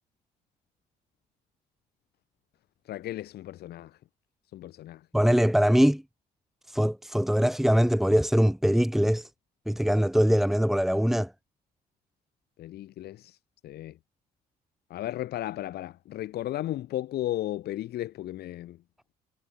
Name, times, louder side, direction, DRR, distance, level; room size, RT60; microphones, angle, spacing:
voice 1, 2.9-4.0 4.5-5.0 12.6-13.4 13.6-14.0 14.9-18.8, left 14 dB, 70° left, 8.0 m, -35 dB
voice 2, 5.1-6.0 6.7-9.3 9.7-11.3, equal, ahead, 5.0 m, -22 dB
cardioid pair, 110°, 17 cm